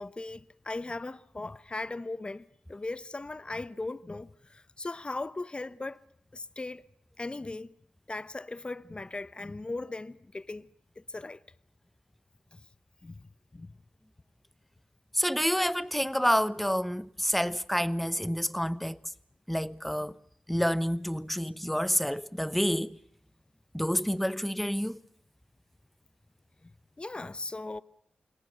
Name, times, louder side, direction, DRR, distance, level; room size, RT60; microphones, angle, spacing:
voice 1, 0.0-6.0 6.3-6.8 7.2-7.7 8.1-10.7 11.0-11.4 12.5-12.6 13.0-13.3 13.5-13.8 20.5-20.6 26.6-26.7 27.0-27.8, left 2 dB, 30° left, 0.9 m, -38 dB
voice 2, 15.1-19.0 19.5-20.2 20.5-23.0 23.7-25.0, equal, 5° left, 1.0 m, -28 dB
28.5 x 19.0 x 7.8 m
supercardioid pair, 40°, 3 cm